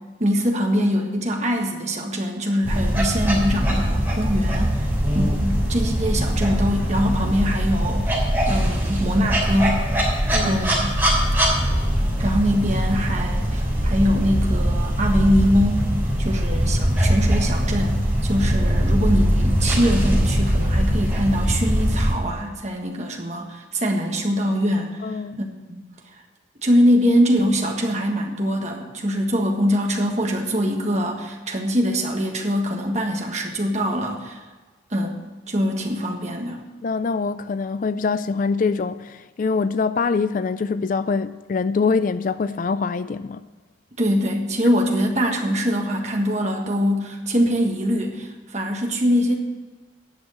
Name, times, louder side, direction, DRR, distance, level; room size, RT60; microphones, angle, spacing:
voice 1, 0.2-4.9 5.1-9.8 10.4-10.9 12.2-15.9 16.2-25.8 26.6-34.4 34.9-35.2 35.5-36.6 44.0-49.3, equal, 35° right, 1.5 m, -23 dB
sound 1, 2.6-22.1, equal, 10° right, 3.4 m, -21 dB
voice 2, 25.0-25.4 36.8-43.4, left 4 dB, 45° left, 0.3 m, -24 dB
10.5 x 6.3 x 8.0 m
head